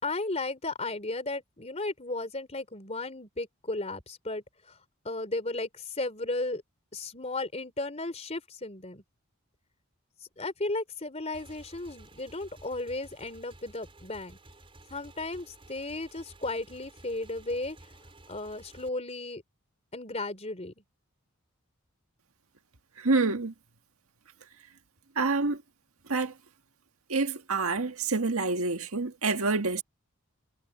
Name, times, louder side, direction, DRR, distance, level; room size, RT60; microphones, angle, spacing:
voice 1, 0.0-4.8 5.0-6.6 6.9-9.0 10.4-14.4 14.9-17.8 18.3-19.4 19.9-20.7, left 2 dB, 30° left, 3.6 m, -35 dB
Motorcycle / Engine, 11.3-18.9, right 2 dB, 25° right, 5.6 m, -53 dB
voice 2, 23.0-23.5 25.2-25.6 26.1-26.3 27.1-29.8, right 3 dB, 85° right, 1.8 m, -27 dB
head